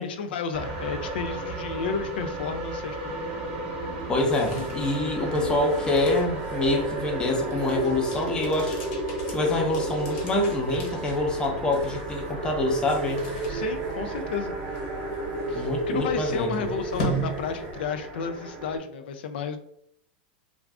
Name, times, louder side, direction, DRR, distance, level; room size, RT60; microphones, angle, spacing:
voice 1, 0.0-3.2 13.5-14.6 15.5-19.6, left 6 dB, 80° left, 8 dB, 0.3 m, -32 dB
sound 1, 0.5-18.8, right 2 dB, 25° right, 0.8 m, -33 dB
sound 2, 4.1-18.1, right 1 dB, 55° left, 0.9 m, -38 dB
voice 2, 4.1-8.8 9.3-13.2 15.5-16.7, left 2 dB, 15° left, 1 dB, 0.5 m, -26 dB
2.4 x 2.3 x 3.4 m, 0.72 s
supercardioid pair, 150°, 5 cm